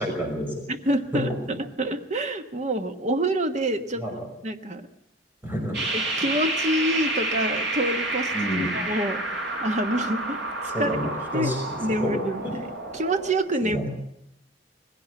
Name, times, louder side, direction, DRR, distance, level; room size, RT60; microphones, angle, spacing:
voice 1, 0.0-0.7 1.1-1.5 4.0-4.2 5.4-5.8 8.3-8.7 10.7-12.1 12.4-12.6 13.6-13.9, equal, 10° right, 0 dB, 5.9 m, -29 dB
voice 2, 0.7-4.1 4.4-4.9 5.9-8.3 8.7-11.0 11.3-11.5 11.8-12.4 12.9-13.8, right 1 dB, 40° right, 7 dB, 1.3 m, -27 dB
sound 1, 5.7-13.3, right 2 dB, 75° right, 6.4 m, -29 dB
20.0 x 16.5 x 8.2 m, 0.77 s
head